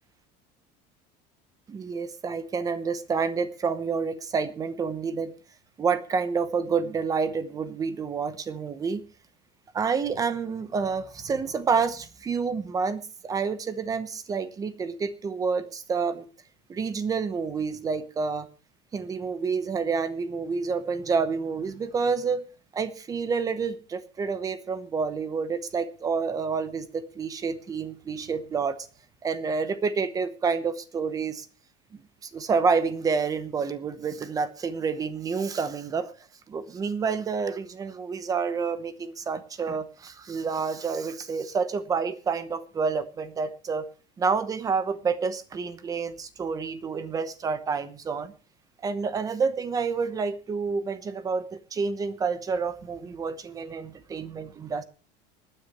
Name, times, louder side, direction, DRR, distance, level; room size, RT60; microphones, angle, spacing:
voice 1, 1.7-5.3 5.8-9.0 9.7-16.2 16.7-18.5 18.9-22.4 22.7-28.8 29.2-31.5 31.9-36.1 36.5-43.9 44.2-48.3 48.8-54.8, right 5 dB, 15° right, 13 dB, 0.9 m, -28 dB
25.5 x 9.9 x 3.1 m, 0.34 s
cardioid pair, 175°, 21 cm